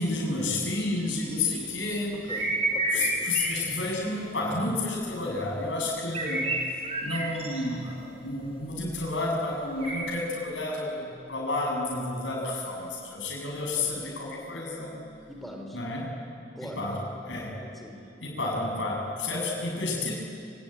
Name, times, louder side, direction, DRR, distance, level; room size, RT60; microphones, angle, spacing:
voice 1, 0.0-2.2 2.9-6.5 7.0-14.9 15.7-16.1 16.6-17.6 18.2-20.1, left 2 dB, 80° left, -2 dB, 7.1 m, -30 dB
sound 1, 0.7-2.0 2.3-3.7 6.1-7.6 9.8-9.9, right 2 dB, 35° right, 4.1 m, -30 dB
voice 2, 1.0-1.5 2.3-3.5 13.7-13.9 15.3-15.8 16.5-16.8 17.6-18.0, equal, ahead, 1 dB, 4.3 m, -42 dB
26.0 x 24.5 x 9.2 m, 2.5 s
head